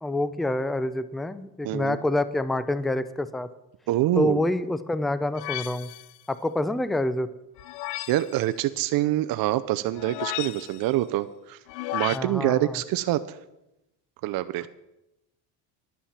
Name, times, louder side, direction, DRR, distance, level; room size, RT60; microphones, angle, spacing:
voice 1, 0.0-3.5 4.2-5.9 6.3-7.3 12.1-12.8, left 1 dB, ahead, 14 dB, 0.3 m, -27 dB
voice 2, 1.6-2.0 3.9-4.5 8.1-11.6 11.9-13.4 14.2-14.7, right 15 dB, 50° right, 11 dB, 0.6 m, -25 dB
sound 1, 5.4-6.2 7.6-8.4 10.0-10.9 11.7-12.2, left 16 dB, 80° left, 0.6 m, -34 dB
10.5 x 7.1 x 7.2 m, 0.92 s
supercardioid pair, 100°, 45 cm